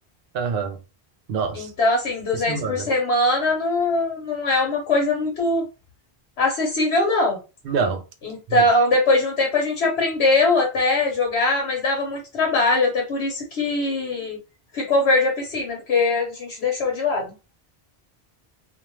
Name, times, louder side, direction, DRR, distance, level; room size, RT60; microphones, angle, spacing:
voice 1, 0.3-0.8 1.3-1.7 2.3-2.9 7.6-8.0 8.5-8.6, right 5 dB, 65° right, 0.7 m, -26 dB
voice 2, 1.5-5.6 6.4-7.4 8.2-14.4 14.7-17.3, left 2 dB, 80° left, 1.1 m, -21 dB
2.5 x 2.2 x 3.0 m
omnidirectional pair, 1.1 m